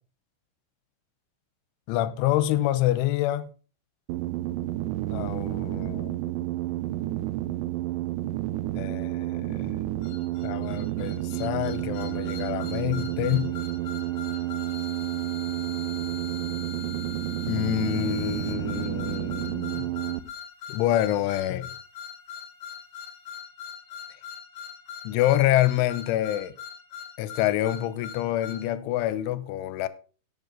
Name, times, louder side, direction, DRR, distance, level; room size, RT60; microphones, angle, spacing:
voice 1, 1.9-3.5 5.1-6.1 8.8-9.8 10.4-13.5 17.5-19.9 20.7-21.7 25.0-26.5 27.2-29.9, left 13 dB, 85° left, 3.0 m, -27 dB
sound 1, 4.1-20.2, right 15 dB, 85° right, 2.6 m, -30 dB
sound 2, 10.0-28.7, left 7 dB, 60° left, 2.2 m, -42 dB
10.5 x 9.7 x 3.9 m
omnidirectional pair, 5.8 m